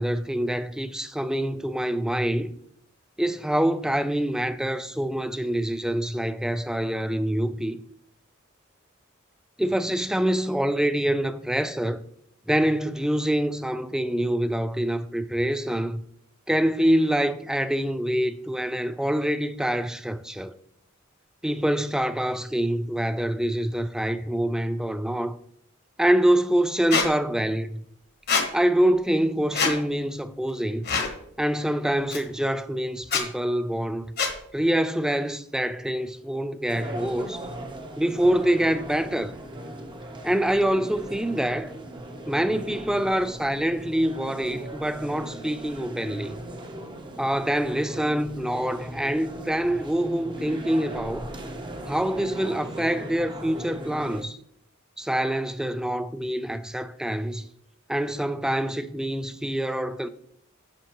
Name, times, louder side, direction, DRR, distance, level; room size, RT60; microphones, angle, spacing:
voice 1, 0.0-2.5 3.2-7.8 9.6-12.0 12.5-16.0 16.5-20.6 21.4-25.4 26.0-27.8 28.5-30.8 31.4-34.1 34.5-37.5 38.0-39.3 40.2-41.7 42.3-46.4 47.2-51.3 51.9-54.4 55.0-57.5 57.9-60.1, right 1 dB, 5° right, 0.3 m, -25 dB
Squeak, 26.9-27.1 28.3-28.5 29.5-29.7 30.8-31.1 32.1-32.2 33.0-33.2 34.2-34.3, left 5 dB, 50° left, 1.3 m, -24 dB
sound 1, 36.7-54.2, right 1 dB, 25° right, 0.8 m, -38 dB
10.5 x 6.3 x 3.0 m
head